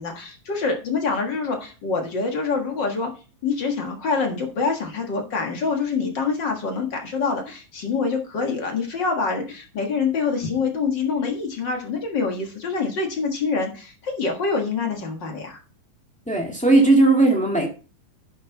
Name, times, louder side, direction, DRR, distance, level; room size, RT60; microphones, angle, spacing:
voice 1, 0.0-3.1 3.4-15.6, left 4 dB, 45° left, 3 dB, 1.6 m, -25 dB
voice 2, 16.3-17.7, right 2 dB, 10° left, 0 dB, 0.3 m, -17 dB
10.5 x 6.6 x 4.0 m, 0.34 s
omnidirectional pair, 4.1 m